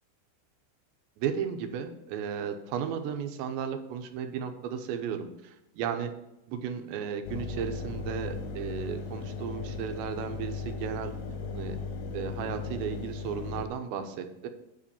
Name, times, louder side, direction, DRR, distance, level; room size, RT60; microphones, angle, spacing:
voice 1, 1.2-6.1 6.5-11.1 11.5-11.8 12.1-14.5, right 7 dB, 80° right, 6 dB, 3.1 m, -34 dB
Engine, 7.2-13.7, left 4 dB, 70° left, 2.3 m, -37 dB
9.3 x 5.3 x 6.9 m, 0.87 s
omnidirectional pair, 5.3 m